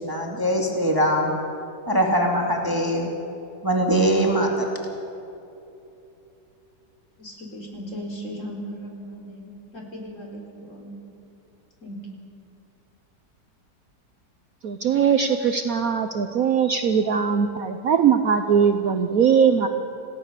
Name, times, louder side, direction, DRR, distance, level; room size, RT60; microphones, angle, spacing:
voice 1, 0.0-1.4 1.9-3.1 3.6-4.8, right 1 dB, 10° right, 0 dB, 2.3 m, -22 dB
voice 2, 7.2-11.0 11.8-12.0, equal, 40° left, 0 dB, 4.5 m, -37 dB
voice 3, 14.6-19.7, right 7 dB, 60° right, 7 dB, 1.1 m, -20 dB
27.5 x 17.0 x 6.8 m, 2.8 s
omnidirectional pair, 2.0 m